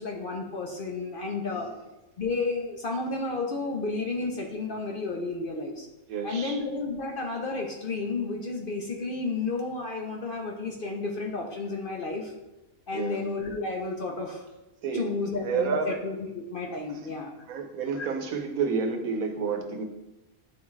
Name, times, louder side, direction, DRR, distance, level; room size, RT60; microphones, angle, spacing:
voice 1, 0.0-1.7 2.2-5.9 6.2-12.3 12.9-14.5 14.9-17.3 18.0-18.1, left 3 dB, 50° left, 0 dB, 0.7 m, -32 dB
voice 2, 6.1-6.6 12.9-13.2 14.8-15.1 15.4-16.0 17.0-17.1 17.5-19.8, right 5 dB, 80° right, 5 dB, 1.2 m, -30 dB
9.4 x 3.5 x 3.1 m, 1.0 s
omnidirectional pair, 1.5 m